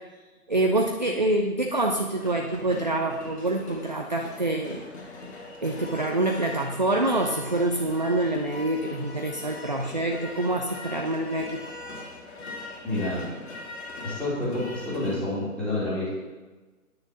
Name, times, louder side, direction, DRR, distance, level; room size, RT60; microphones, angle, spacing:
voice 1, 0.5-4.8 5.6-11.6, right 2 dB, 30° right, 2 dB, 0.5 m, -26 dB
sound 1, 2.2-15.2, left 2 dB, 45° left, 2.7 m, -41 dB
voice 2, 12.8-13.2 14.0-16.1, left 2 dB, 5° left, -10 dB, 2.7 m, -28 dB
9.8 x 6.5 x 7.2 m, 1.2 s
hypercardioid pair, 160°, 45 cm